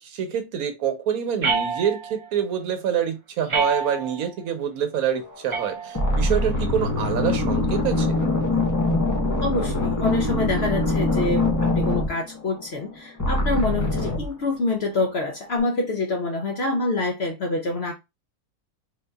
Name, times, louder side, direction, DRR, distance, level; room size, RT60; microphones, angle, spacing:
voice 1, 0.0-8.2, right 8 dB, 75° right, 1.1 m, -26 dB
sound 1, 1.4-2.3 3.5-4.3 5.5-6.3, right 4 dB, 55° right, 0.3 m, -27 dB
sound 2, 5.3-5.6 5.9-12.9 13.2-14.3, left 2 dB, 30° left, 0.3 m, -23 dB
voice 2, 9.4-17.9, left 3 dB, 60° left, 0.6 m, -26 dB
3.8 x 2.7 x 2.3 m
omnidirectional pair, 1.6 m